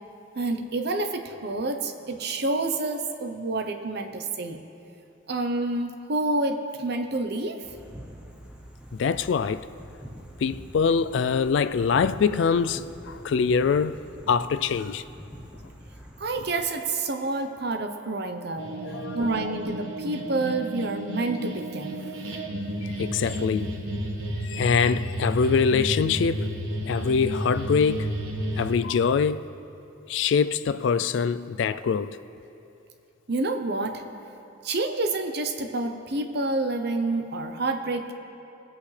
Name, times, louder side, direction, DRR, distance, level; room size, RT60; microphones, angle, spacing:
voice 1, 0.3-4.6 5.3-7.6 16.2-18.7 19.1-22.0 33.3-34.0 34.6-38.1, right 2 dB, 50° right, 0.8 m, -28 dB
sound 1, 7.6-16.7, equal, 5° right, 0.8 m, -44 dB
voice 2, 8.9-9.7 10.4-14.0 14.3-15.0 18.6-19.5 22.8-23.7 24.4-26.5 26.9-28.2 28.6-29.5 30.1-32.2, left 5 dB, 60° left, 0.3 m, -24 dB
sound 2, 18.6-28.7, equal, 80° right, 1.5 m, -32 dB
20.5 x 8.4 x 3.3 m
head